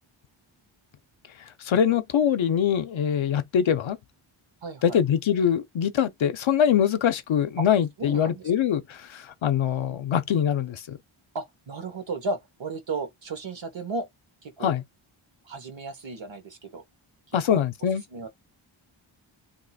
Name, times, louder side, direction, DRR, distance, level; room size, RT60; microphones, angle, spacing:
voice 1, 1.6-4.0 4.8-11.0 14.6-14.8 17.3-18.0, left 8 dB, 70° left, 0.6 m, -23 dB
voice 2, 4.6-5.0 7.6-7.7 8.0-8.5 11.3-14.1 14.4-14.7 15.4-16.8 17.4-17.6 18.1-18.3, right 3 dB, 60° right, 1.1 m, -34 dB
2.7 x 2.4 x 4.1 m
wide cardioid pair, 135°, 50 cm